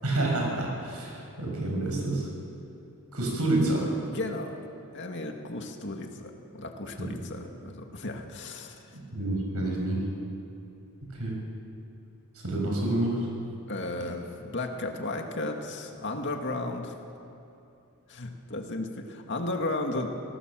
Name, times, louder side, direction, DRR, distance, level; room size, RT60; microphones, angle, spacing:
voice 1, 0.0-2.3 3.1-3.9 7.0-7.1 8.9-10.0 11.0-11.4 12.4-13.2, right 2 dB, 85° right, -1 dB, 7.1 m, -28 dB
voice 2, 4.1-4.6 4.9-9.0 13.7-16.9 18.1-20.1, left 2 dB, 55° left, 3 dB, 2.2 m, -34 dB
28.5 x 18.0 x 7.7 m, 2.8 s
head